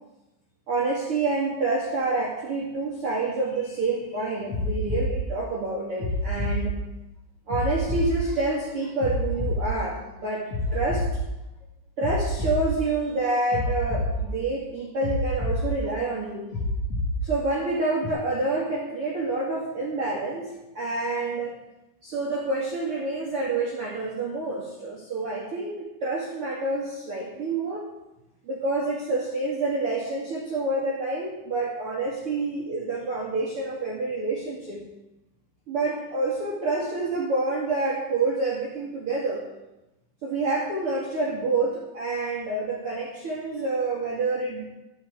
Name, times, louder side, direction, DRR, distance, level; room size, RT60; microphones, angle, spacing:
voice 1, 0.7-6.8 7.5-11.1 12.0-16.5 17.2-21.5 22.0-27.9 28.4-34.8 35.7-39.4 40.2-44.7, right 3 dB, 45° right, -5 dB, 2.0 m, -28 dB
sound 1, 4.5-5.1 6.0-6.6 7.5-8.1 9.0-9.6 10.5-11.1 12.0-12.6 13.5-14.1 15.0-15.6 16.5-17.1 18.0-18.1, left 2 dB, 50° left, 2.1 m, -27 dB
13.0 x 6.4 x 8.1 m, 0.96 s
omnidirectional pair, 5.5 m